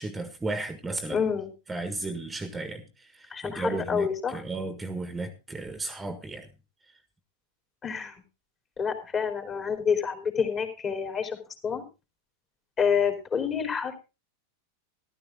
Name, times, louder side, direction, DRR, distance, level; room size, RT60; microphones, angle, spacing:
voice 1, 0.0-1.2 1.7-6.5, right 2 dB, 15° right, 1.7 m, -34 dB
voice 2, 1.1-1.5 3.3-4.4 7.8-8.1 8.8-11.4 11.6-11.8 12.8-14.0, left 6 dB, 30° left, 3.4 m, -28 dB
14.0 x 12.5 x 3.6 m
hypercardioid pair, 95°, 0 cm